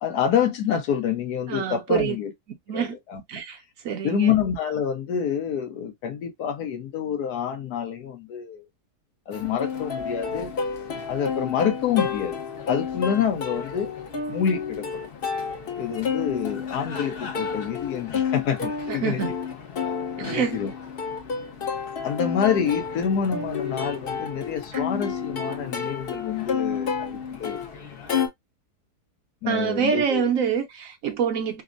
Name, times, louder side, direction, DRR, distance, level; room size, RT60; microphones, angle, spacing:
voice 1, 0.0-2.3 2.7-3.2 4.0-8.7 9.3-10.5 11.1-12.4 12.7-13.9 14.3-15.1 15.8-19.2 20.2-20.7 22.0-27.6 29.4-30.3, left 8 dB, 75° left, 1.3 m, -27 dB
voice 2, 1.5-2.2 2.7-2.9 3.3-3.6 3.8-4.3 18.9-19.3 20.2-20.7 24.7-24.9 29.4-31.6, right 7 dB, 65° right, 0.9 m, -26 dB
Plucked string instrument, 9.3-28.3, left 6 dB, 50° left, 0.7 m, -30 dB
3.4 x 2.0 x 2.3 m
omnidirectional pair, 1.7 m